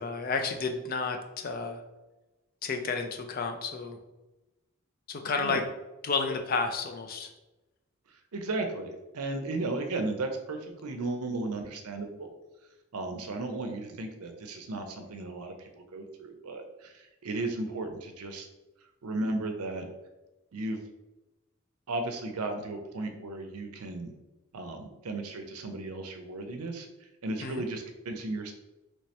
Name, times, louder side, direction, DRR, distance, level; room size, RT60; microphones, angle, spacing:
voice 1, 0.0-1.8 2.6-4.0 5.1-5.6 6.0-7.3 27.4-27.7, left 4 dB, 40° left, 4 dB, 0.4 m, -31 dB
voice 2, 8.3-12.4 12.9-18.5 19.0-19.9 20.5-20.8 21.9-24.1 24.5-26.9 27.2-28.5, right 2 dB, 85° right, 5 dB, 0.5 m, -35 dB
3.1 x 2.8 x 3.2 m, 1.1 s
head